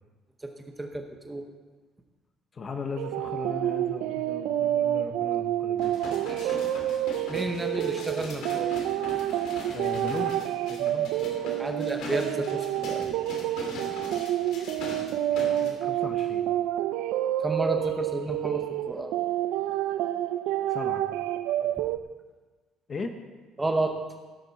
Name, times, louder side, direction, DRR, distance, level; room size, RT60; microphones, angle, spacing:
voice 1, 0.8-1.4 6.2-6.6 7.3-8.7 11.6-13.1 17.4-19.1 21.6-21.7 23.6-24.0, right 2 dB, 10° right, 4 dB, 0.8 m, -31 dB
voice 2, 2.5-5.9 9.7-11.1 14.9-16.4 20.7-21.0 22.9-23.1, left 4 dB, 25° left, 6 dB, 0.9 m, -38 dB
sound 1, 3.0-22.0, right 12 dB, 85° right, 0.4 m, -28 dB
sound 2, 5.8-15.7 16.2-16.3, left 2 dB, 60° left, 2.7 m, -41 dB
15.5 x 12.5 x 4.1 m, 1.4 s
cardioid pair, 175°, 0 cm